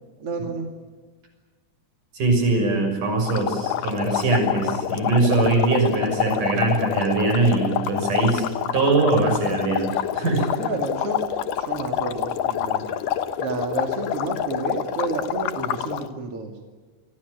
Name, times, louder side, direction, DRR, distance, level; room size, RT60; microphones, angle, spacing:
voice 1, 0.2-0.7 10.6-11.3 11.5-12.9 13.4-16.5, right 3 dB, 45° right, 4 dB, 3.3 m, -30 dB
voice 2, 2.1-8.5 8.7-10.5, right 3 dB, 75° right, 5 dB, 8.0 m, -22 dB
sound 1, 3.3-16.1, left 10 dB, 90° left, 2.9 m, -27 dB
29.0 x 23.0 x 8.4 m, 1.3 s
omnidirectional pair, 3.7 m